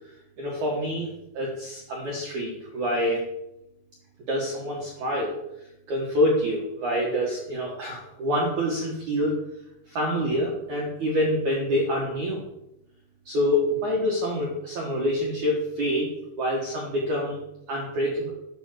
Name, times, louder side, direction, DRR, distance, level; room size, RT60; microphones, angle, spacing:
voice 1, 0.4-3.3 4.3-5.4 5.9-9.4 9.9-12.4 13.3-16.1 16.4-17.4 17.7-18.3, equal, 65° right, -3 dB, 1.9 m, -26 dB
10.5 x 5.8 x 6.7 m, 0.85 s
omnidirectional pair, 5.7 m